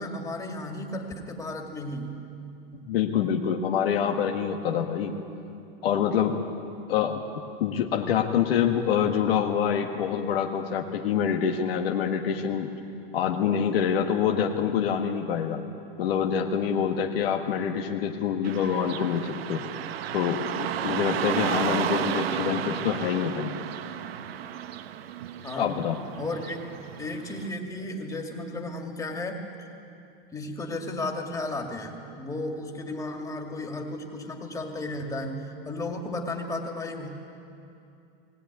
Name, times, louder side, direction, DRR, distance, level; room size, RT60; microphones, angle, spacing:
voice 1, 0.0-2.2 25.4-25.8 26.2-26.6 27.0-29.7 30.3-37.1, left 2 dB, 10° left, 2 dB, 2.3 m, -34 dB
voice 2, 2.7-5.1 5.8-6.4 6.9-7.2 7.6-12.7 13.1-15.6 16.0-19.6 20.1-23.5 25.6-26.0, left 8 dB, 85° left, 2 dB, 1.8 m, -26 dB
Car passing by / Traffic noise roadway noise, 18.4-27.5, right 10 dB, 90° right, 1.2 m, -32 dB
20.0 x 18.0 x 9.5 m, 2.6 s
supercardioid pair, 140°, 29 cm